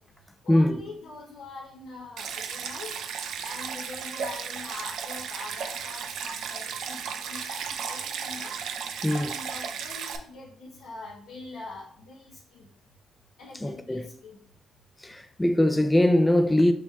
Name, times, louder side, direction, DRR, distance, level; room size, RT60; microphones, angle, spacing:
voice 1, 0.4-2.9 3.4-8.5 9.1-12.7 13.4-14.4, left 3 dB, 85° left, 0.7 m, -43 dB
Stream, 2.2-10.2, right 7 dB, 75° right, 0.4 m, -35 dB
voice 2, 13.6-14.1 15.0-16.7, left 1 dB, 10° left, 0.3 m, -22 dB
6.1 x 2.9 x 2.3 m
cardioid pair, 90°, 0 cm